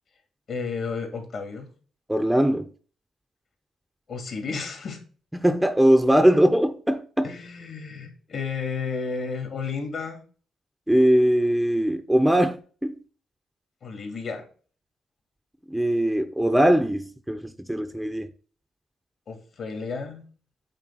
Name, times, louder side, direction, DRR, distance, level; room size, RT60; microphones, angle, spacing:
voice 1, 0.5-1.7 4.1-5.0 7.2-10.2 13.8-14.4 19.3-20.2, left 5 dB, 55° left, 2.8 m, -32 dB
voice 2, 2.1-2.6 5.3-7.3 10.9-12.9 15.7-18.3, right 1 dB, 5° right, 0.6 m, -21 dB
8.8 x 3.4 x 6.2 m
cardioid pair, 90°, 0 cm